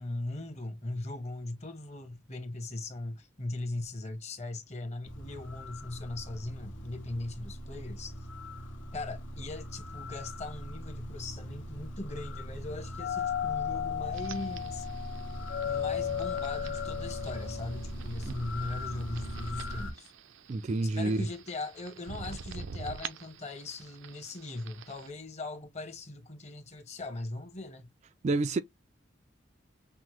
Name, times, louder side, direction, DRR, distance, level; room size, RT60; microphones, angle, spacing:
voice 1, 0.0-8.1 8.9-14.9 15.6-20.1 20.8-27.9, left 2 dB, 35° left, 1.0 m, -39 dB
sound 1, 5.0-19.9, equal, 85° left, 1.3 m, -40 dB
Doorbell, 13.0-17.8, left 10 dB, 60° left, 0.3 m, -35 dB
sound 2, 14.1-25.1, right 5 dB, 80° right, 0.6 m, -47 dB
voice 2, 20.5-21.3 28.2-28.6, right 2 dB, 35° right, 0.3 m, -28 dB
5.9 x 2.1 x 3.0 m
head